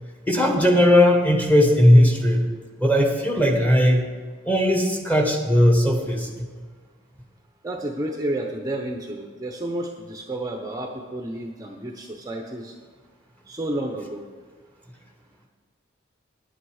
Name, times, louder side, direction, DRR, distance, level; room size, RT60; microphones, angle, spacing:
voice 1, 0.3-2.4 2.8-4.1 4.5-6.5, left 1 dB, 10° left, 1 dB, 1.2 m, -18 dB
voice 2, 7.6-12.7 13.5-14.2, right 1 dB, 15° right, 2 dB, 0.7 m, -31 dB
10.0 x 9.0 x 4.9 m, 1.5 s
head